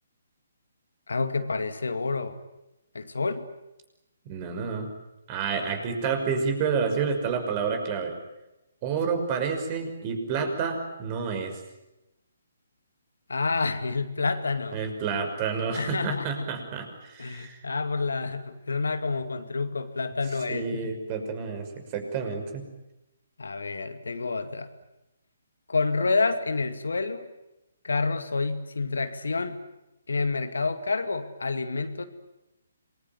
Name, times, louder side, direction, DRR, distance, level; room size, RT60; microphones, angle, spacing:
voice 1, 1.1-2.4 2.9-3.4 13.3-14.8 15.7-16.3 17.2-20.8 23.4-24.7 25.7-27.2 27.8-29.6 30.1-32.0, left 3 dB, 80° left, 9 dB, 2.3 m, -28 dB
voice 2, 4.3-4.9 5.3-8.1 8.8-11.6 14.7-17.6 20.5-22.6, right 5 dB, 30° right, 6 dB, 5.8 m, -29 dB
27.0 x 21.5 x 9.4 m, 0.94 s
figure-of-eight pair, 140°, 0 cm